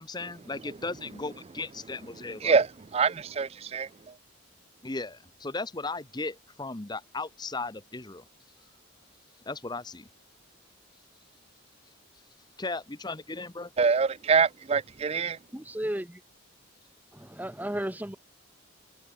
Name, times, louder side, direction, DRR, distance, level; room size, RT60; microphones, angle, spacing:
voice 1, 0.0-2.6 4.8-8.2 9.5-10.1 12.6-13.7, left 3 dB, 20° left, 0.9 m, -36 dB
voice 2, 2.4-3.9 13.8-15.4, right 5 dB, 30° right, 0.4 m, -25 dB
voice 3, 15.5-16.2 17.1-18.2, right 1 dB, 10° right, 0.9 m, -34 dB
open air
head